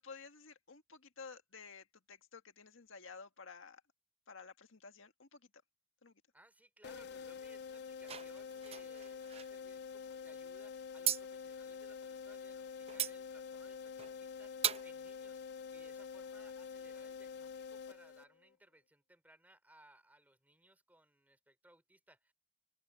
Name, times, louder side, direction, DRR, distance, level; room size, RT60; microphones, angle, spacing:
voice 1, 0.0-3.8 4.3-5.4 6.0-6.1, left 5 dB, 85° left, 1.7 m, -53 dB
voice 2, 6.3-15.4 15.7-22.3, right 1 dB, 10° right, 3.9 m, -65 dB
sound 1, 6.8-18.5, left 6 dB, 55° left, 0.4 m, -47 dB
sound 2, 8.0-9.5 11.1-11.2 12.9-13.1 14.0-14.2 14.6-14.9, right 10 dB, 30° right, 0.7 m, -37 dB
head